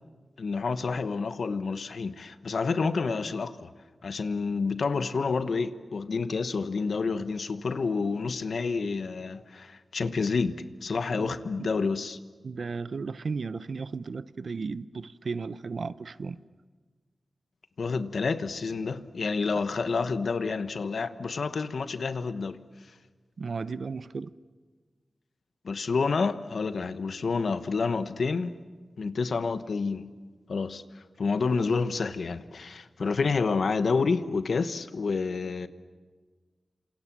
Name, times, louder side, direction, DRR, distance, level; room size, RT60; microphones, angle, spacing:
voice 1, 0.4-3.7 4.0-12.2 17.8-22.6 25.6-28.6 29.0-30.1 30.5-30.8 31.2-35.7, left 4 dB, 75° left, 1.2 m, -29 dB
voice 2, 11.2-11.7 12.4-16.4 23.4-24.3, right 4 dB, 70° right, 0.8 m, -35 dB
28.5 x 27.0 x 7.5 m
wide cardioid pair, 80°, 0 cm